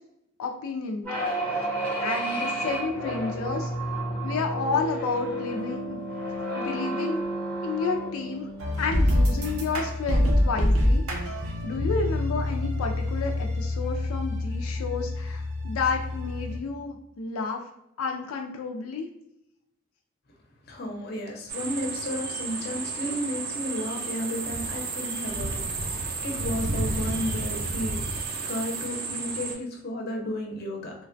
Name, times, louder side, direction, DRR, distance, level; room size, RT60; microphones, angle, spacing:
voice 1, 0.4-1.1 2.0-3.7 4.2-6.0 6.5-7.2 7.6-8.5 8.8-11.2 11.6-17.6 18.0-19.1, left 4 dB, 90° left, 2 dB, 0.4 m, -31 dB
sound 1, 1.0-9.8, right 1 dB, 10° left, 0.7 m, -31 dB
sound 2, 8.6-16.6, left 1 dB, 85° right, 0.7 m, -26 dB
voice 2, 20.7-25.6 26.2-28.0 28.4-30.9, left 1 dB, 50° left, 1 dB, 0.6 m, -33 dB
sound 3, 21.5-29.5, right 3 dB, 45° right, 0.4 m, -32 dB
3.1 x 2.1 x 2.5 m, 0.82 s
head